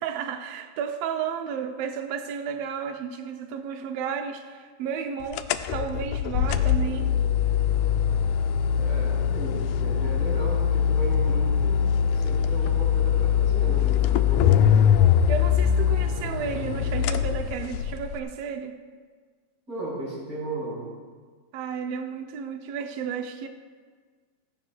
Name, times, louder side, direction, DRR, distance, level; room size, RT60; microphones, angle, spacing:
voice 1, 0.0-7.1 15.3-18.8 21.5-23.5, right 7 dB, 90° right, 5 dB, 1.4 m, -32 dB
sound 1, 5.3-18.2, left 8 dB, 80° left, 1.8 m, -22 dB
voice 2, 8.8-11.8 12.1-15.0 19.7-20.9, right 2 dB, 25° right, -5 dB, 4.9 m, -35 dB
17.5 x 16.0 x 2.3 m, 1.6 s
omnidirectional pair, 3.8 m